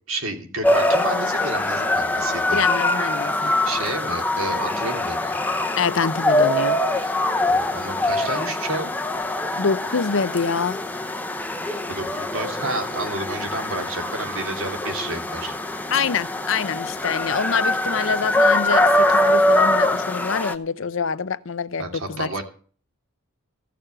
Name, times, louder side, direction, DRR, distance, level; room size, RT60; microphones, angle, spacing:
voice 1, 0.1-2.6 3.4-5.4 6.9-7.1 7.5-8.9 11.6-15.5 21.8-22.4, right 2 dB, 65° right, 2.8 m, -30 dB
sound 1, 0.6-20.6, left 1 dB, 10° left, 0.7 m, -23 dB
voice 2, 2.5-3.6 5.8-6.8 9.6-10.8 15.9-22.3, left 5 dB, 60° left, 0.6 m, -25 dB
15.5 x 6.8 x 8.8 m
head